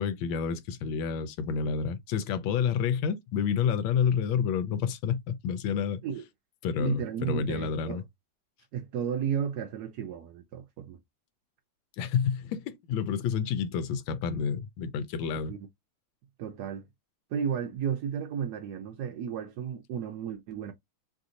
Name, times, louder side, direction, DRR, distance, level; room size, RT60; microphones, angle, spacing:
voice 1, 0.0-6.0 6.6-8.0 12.0-15.5, left 7 dB, 90° left, 1.4 m, -29 dB
voice 2, 6.7-8.0 8.7-11.0 15.5-15.7 16.4-16.9 17.3-20.7, right 8 dB, 75° right, 0.9 m, -33 dB
3.3 x 2.5 x 2.7 m
omnidirectional pair, 2.1 m